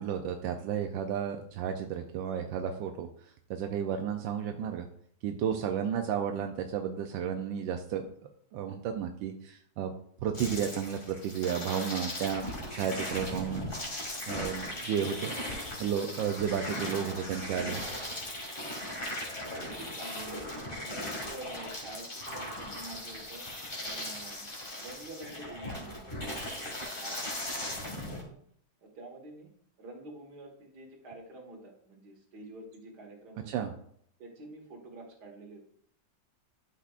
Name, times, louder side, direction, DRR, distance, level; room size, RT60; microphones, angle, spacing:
voice 1, 0.0-3.1 3.5-4.9 5.2-8.1 8.5-9.9 10.2-13.6 14.3-15.4 15.8-17.8 33.5-33.7, right 8 dB, 90° right, 4 dB, 1.4 m, -32 dB
sound 1, 10.3-28.2, left 1 dB, 30° left, 2.2 m, -38 dB
voice 2, 19.4-20.5 20.8-23.5 23.8-24.5 24.7-26.3 26.6-26.7 26.9-28.4 28.8-29.5 29.8-33.7 34.2-35.6, right 2 dB, 60° right, 1 dB, 2.1 m, -48 dB
11.5 x 5.9 x 2.4 m, 0.65 s
omnidirectional pair, 2.0 m